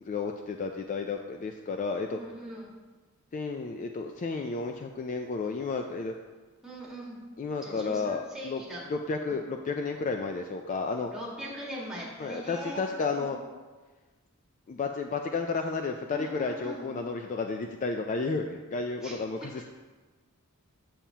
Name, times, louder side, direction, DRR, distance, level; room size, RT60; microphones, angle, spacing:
voice 1, 0.0-2.2 3.3-6.1 7.4-8.6 8.9-11.1 12.2-13.4 14.7-19.7, left 4 dB, 35° left, 4 dB, 0.3 m, -32 dB
voice 2, 2.1-2.7 6.6-7.2 7.6-8.8 9.3-9.4 11.1-12.8 13.1-13.3 16.1-16.9 19.0-19.1, equal, 5° right, -5 dB, 1.5 m, -40 dB
7.2 x 7.1 x 2.8 m, 1.3 s
head